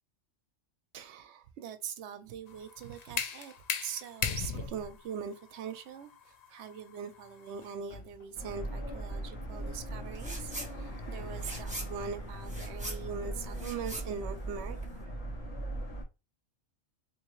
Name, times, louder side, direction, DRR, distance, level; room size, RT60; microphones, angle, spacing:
voice 1, 0.9-3.5 3.8-15.3, right 7 dB, 65° right, 0.8 m, -42 dB
sound 1, 2.5-8.2, left 6 dB, 85° left, 0.3 m, -38 dB
sound 2, 8.3-16.0, right 1 dB, 30° left, 1.3 m, -39 dB
sound 3, 10.1-10.7 11.0-15.0, right 1 dB, 5° right, 1.2 m, -43 dB
3.6 x 3.0 x 3.1 m
omnidirectional pair, 1.3 m